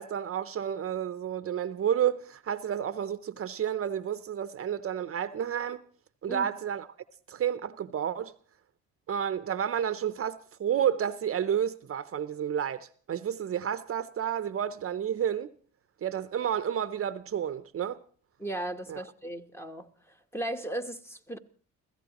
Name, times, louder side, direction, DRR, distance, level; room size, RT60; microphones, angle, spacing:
voice 1, 0.0-5.8 6.2-6.9 7.3-8.3 9.1-15.5 16.0-18.0 18.9-19.0, right 9 dB, 50° right, 0.7 m, -30 dB
voice 2, 18.4-19.9 20.3-21.4, right 1 dB, 10° left, 1.1 m, -36 dB
30.0 x 16.0 x 3.0 m
cardioid pair, 90°, 30 cm